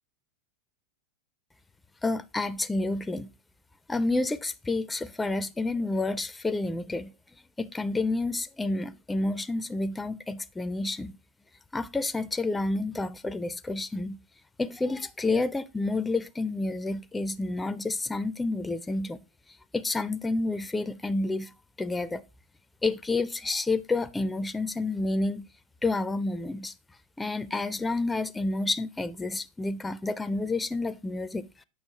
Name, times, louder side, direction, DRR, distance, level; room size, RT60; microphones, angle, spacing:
voice 1, 2.0-3.3 3.9-7.1 7.6-11.2 11.7-14.2 14.6-19.2 19.7-21.5 21.8-22.2 22.8-25.4 25.8-26.7 27.2-31.6, left 2 dB, 10° left, 0.4 m, -29 dB
7.1 x 5.9 x 3.1 m
figure-of-eight pair, 90°, 0 cm